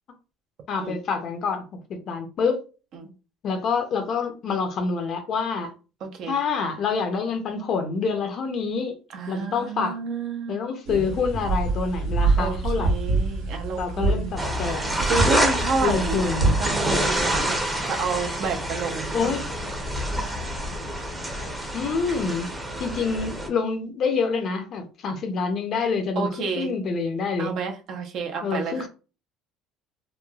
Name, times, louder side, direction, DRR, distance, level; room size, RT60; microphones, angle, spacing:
voice 1, 0.7-1.6 1.9-2.6 3.4-5.7 6.3-9.0 9.3-10.0 10.5-12.9 13.8-14.9 15.8-16.5 19.1-19.4 21.4-22.5 22.8-27.5 28.4-28.9, left 5 dB, 50° left, 0.5 m, -27 dB
voice 2, 6.0-6.3 9.1-10.6 12.4-14.3 15.1-16.2 16.6-17.6 17.9-19.4 26.2-26.7 27.4-28.9, right 4 dB, 55° right, 0.6 m, -30 dB
sound 1, 10.8-16.7, right 3 dB, 90° right, 1.0 m, -25 dB
sound 2, 14.4-23.5, right 1 dB, 10° right, 0.6 m, -27 dB
3.0 x 2.2 x 2.3 m
cardioid pair, 115°, 0 cm